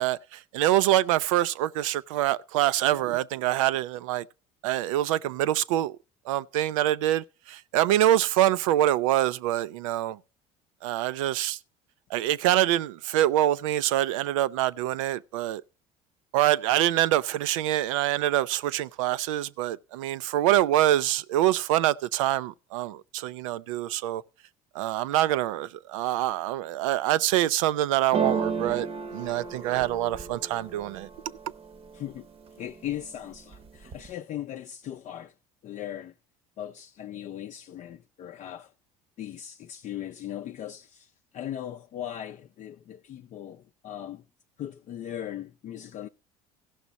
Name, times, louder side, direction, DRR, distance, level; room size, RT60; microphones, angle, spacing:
voice 1, 0.0-4.3 4.6-6.0 6.3-10.2 10.8-11.6 12.1-15.6 16.3-24.2 24.7-28.9 29.1-31.1, right 13 dB, 85° right, 0.4 m, -25 dB
sound 1, 28.1-32.0 32.5-33.1 33.4-34.1, right 5 dB, 35° right, 0.8 m, -33 dB
voice 2, 31.9-32.3 32.6-35.3 35.6-36.1 36.6-38.7 39.2-44.2 44.6-46.1, left 11 dB, 45° left, 0.5 m, -38 dB
15.5 x 6.1 x 4.0 m
supercardioid pair, 85°, 16 cm